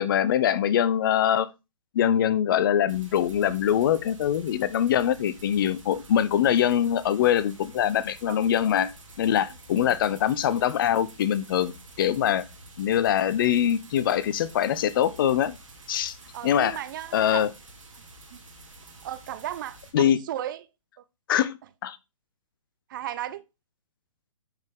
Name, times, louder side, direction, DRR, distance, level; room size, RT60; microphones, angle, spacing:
voice 1, 0.0-1.5 1.9-8.9 9.2-12.4 12.8-15.6 15.9-16.1 16.4-16.8 17.1-17.5 19.9-20.2 21.3-22.0, left 10 dB, 45° left, 0.8 m, -23 dB
sound 1, 2.9-19.9, right 1 dB, 80° right, 2.7 m, -48 dB
voice 2, 16.3-17.5 18.3-18.4 19.0-20.7 22.9-23.4, right 12 dB, 40° right, 0.7 m, -35 dB
10.5 x 5.2 x 3.7 m
figure-of-eight pair, 130°, 16 cm